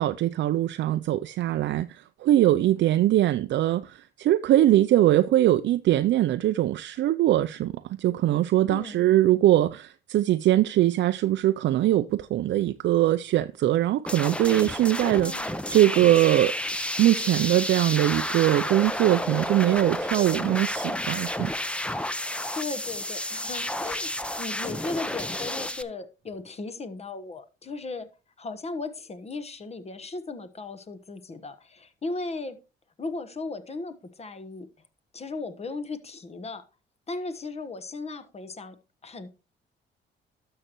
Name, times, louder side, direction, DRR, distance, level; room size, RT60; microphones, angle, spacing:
voice 1, 0.0-21.5, right 13 dB, 65° right, 0.4 m, -22 dB
voice 2, 8.7-9.1 15.1-15.6 22.5-24.1 24.4-28.1 28.4-32.6 33.0-34.7 35.1-36.6 37.1-38.7 39.0-39.3, left 3 dB, 30° left, 1.1 m, -36 dB
sound 1, 14.1-25.8, left 1 dB, 5° left, 0.6 m, -31 dB
12.0 x 6.5 x 2.9 m
cardioid pair, 90°, 20 cm